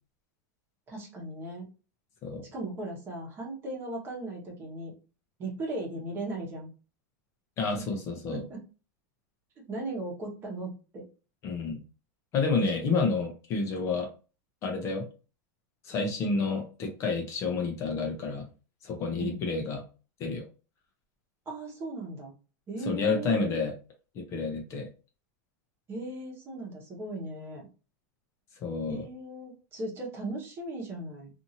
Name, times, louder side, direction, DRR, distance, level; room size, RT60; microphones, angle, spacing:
voice 1, 0.9-1.7 2.5-4.9 5.4-6.7 7.7-7.9 8.3-8.6 9.7-11.1 12.6-13.0 19.2-19.4 21.5-22.3 22.7-23.7 25.9-27.7 28.9-31.3, right 2 dB, 25° right, -1 dB, 1.0 m, -37 dB
voice 2, 7.6-8.4 11.4-11.8 12.3-14.1 14.6-15.1 15.8-18.5 18.8-19.8 20.2-20.5 22.8-23.7 24.1-24.9 28.6-29.1, left 4 dB, 30° left, 2 dB, 0.6 m, -29 dB
2.6 x 2.6 x 2.8 m, 0.33 s
supercardioid pair, 160°, 10 cm